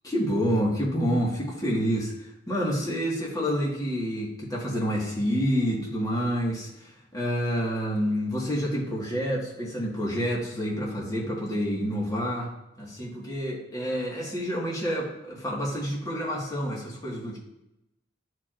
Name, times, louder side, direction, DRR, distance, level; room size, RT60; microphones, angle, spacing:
voice 1, 0.0-12.5 12.8-17.4, equal, 20° left, -4 dB, 1.8 m, -28 dB
12.0 x 4.6 x 2.6 m, 0.89 s
head